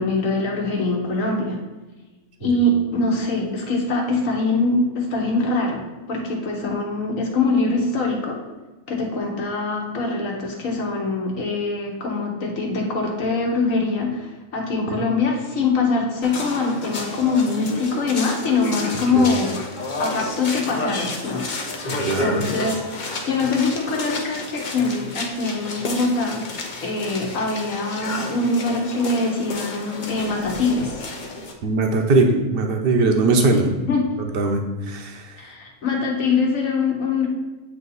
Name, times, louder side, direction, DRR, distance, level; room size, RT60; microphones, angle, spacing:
voice 1, 0.0-1.6 2.4-5.8 6.1-8.4 8.9-19.6 20.0-21.4 22.2-26.4 26.8-31.0 33.9-34.1 35.4-37.3, left 3 dB, 65° left, 0 dB, 1.4 m, -23 dB
sound 1, 16.2-31.5, left 2 dB, 45° left, 0.7 m, -31 dB
voice 2, 21.9-22.5 31.6-33.7 34.2-34.6 34.9-35.4, right 3 dB, 50° right, 4 dB, 0.8 m, -20 dB
8.3 x 2.8 x 4.0 m, 1.2 s
omnidirectional pair, 1.5 m